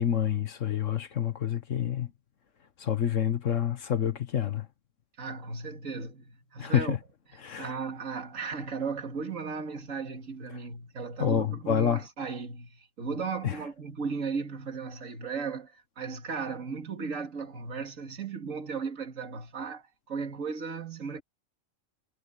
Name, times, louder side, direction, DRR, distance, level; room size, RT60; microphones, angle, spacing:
voice 1, 0.0-2.1 2.8-4.7 6.6-7.0 7.4-7.7 10.5-10.6 11.2-12.0 13.4-13.6, left 9 dB, 70° left, 1.5 m, -28 dB
voice 2, 5.2-7.0 7.6-21.2, right 5 dB, 75° right, 2.6 m, -36 dB
omnidirectional pair, 1.4 m